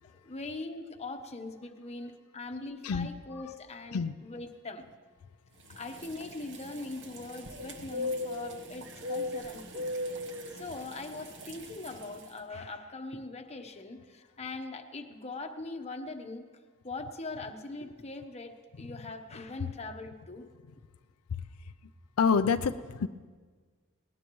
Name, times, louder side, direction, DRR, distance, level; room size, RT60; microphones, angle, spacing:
voice 1, 0.2-4.9 5.8-9.9 10.5-16.5 16.8-20.5, left 2 dB, 30° left, 5 dB, 1.0 m, -41 dB
voice 2, 2.8-3.4 3.9-4.2 21.3-21.4 22.2-23.1, left 5 dB, 80° left, 9 dB, 0.5 m, -28 dB
sound 1, 5.7-12.3, left 1 dB, 55° right, 1.2 m, -39 dB
19.5 x 18.5 x 3.1 m, 1.5 s
head